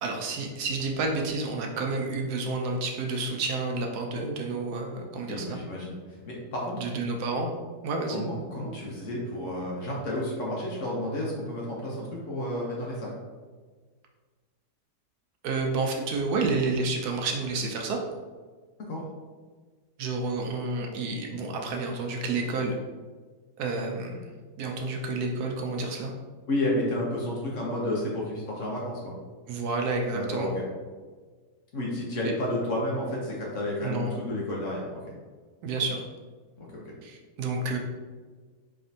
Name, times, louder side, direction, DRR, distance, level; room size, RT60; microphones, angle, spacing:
voice 1, 0.0-5.6 6.8-7.5 7.8-8.2 15.4-18.0 20.0-22.8 23.6-24.3 24.6-26.1 29.5-30.5 32.2-32.3 33.8-34.1 35.6-36.0 37.0-37.8, right 3 dB, 75° right, 1 dB, 1.0 m, -30 dB
voice 2, 5.3-6.0 6.3-6.9 8.1-13.1 18.9-19.0 26.5-29.1 30.1-30.7 31.7-35.0 36.6-36.8, left 1 dB, 55° left, -4 dB, 1.0 m, -31 dB
4.2 x 3.4 x 2.6 m, 1.5 s
omnidirectional pair, 1.8 m